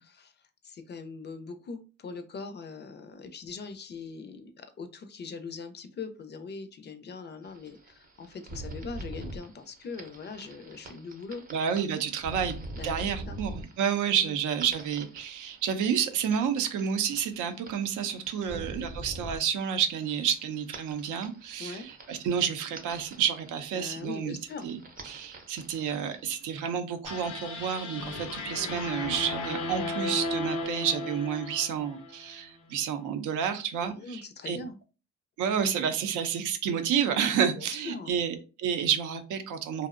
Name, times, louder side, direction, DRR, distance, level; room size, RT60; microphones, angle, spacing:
voice 1, 0.6-11.4 12.3-12.4 12.8-13.4 14.2-14.4 18.4-18.7 21.6-21.9 23.7-24.7 28.6-28.8 33.8-34.8 37.6-38.1, left 4 dB, 35° left, 9 dB, 0.4 m, -41 dB
sound 1, 7.4-26.8, right 2 dB, 30° right, 0.6 m, -45 dB
voice 2, 11.5-12.6 12.8-24.4 24.6-24.8 25.0-34.6 35.4-39.9, right 8 dB, 80° right, 8 dB, 0.5 m, -30 dB
sound 2, 27.0-32.3, left 2 dB, 80° left, 0.6 m, -35 dB
2.6 x 2.0 x 2.4 m, 0.33 s
cardioid pair, 90°, 30 cm